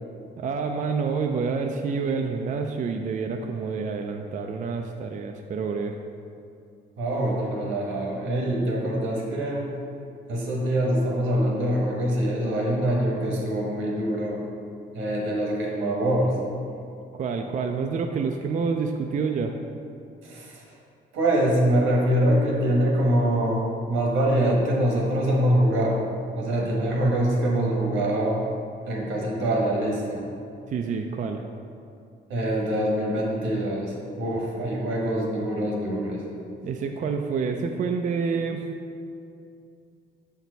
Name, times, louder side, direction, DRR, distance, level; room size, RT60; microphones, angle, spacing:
voice 1, 0.4-6.0 17.1-19.5 30.7-31.4 36.6-38.7, right 5 dB, 40° right, 4 dB, 0.4 m, -28 dB
voice 2, 7.0-9.7 10.3-14.4 14.9-16.4 20.2-20.6 21.1-23.6 23.9-26.0 26.4-28.4 28.9-30.2 32.3-36.2, right 1 dB, 85° right, -2 dB, 1.3 m, -24 dB
5.8 x 4.5 x 4.0 m, 2.5 s
cardioid pair, 90°, 20 cm